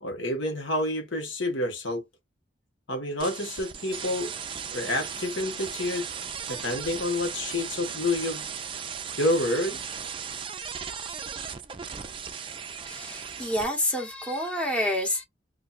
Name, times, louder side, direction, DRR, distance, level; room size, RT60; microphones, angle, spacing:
voice 1, 0.0-2.0 2.9-4.3 4.7-6.1 6.5-8.5 9.2-9.8, left 1 dB, 85° left, 1.1 m, -28 dB
sound 1, 3.2-13.6, right 7 dB, 25° right, 0.3 m, -37 dB
voice 2, 12.8-15.2, left 1 dB, 5° left, 0.9 m, -28 dB
2.5 x 2.2 x 3.9 m
head